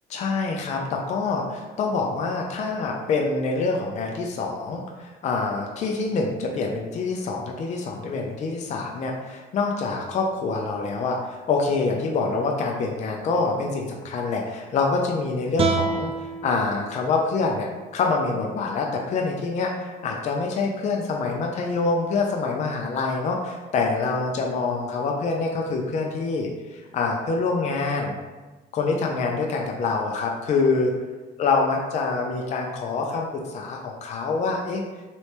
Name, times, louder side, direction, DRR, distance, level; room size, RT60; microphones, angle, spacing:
voice 1, 0.1-16.1 16.4-17.7 17.9-28.2 28.7-30.9 31.4-33.3 33.5-34.8, left 4 dB, 45° left, 0 dB, 0.5 m, -26 dB
sound 1, 15.6-18.7, right 3 dB, 35° right, 0.4 m, -30 dB
3.2 x 3.0 x 2.8 m, 1.2 s
cardioid pair, 110°, 17 cm